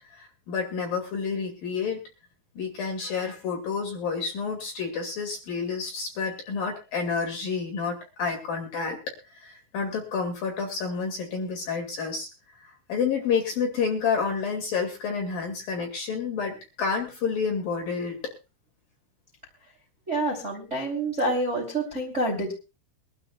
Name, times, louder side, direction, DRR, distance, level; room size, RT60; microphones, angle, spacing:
voice 1, 0.1-2.0 2.5-12.3 12.6-18.3, left 5 dB, 50° left, 2 dB, 3.4 m, -29 dB
voice 2, 20.1-22.5, right 1 dB, 20° right, 0 dB, 2.2 m, -27 dB
24.0 x 12.5 x 2.3 m, 0.29 s
omnidirectional pair, 5.8 m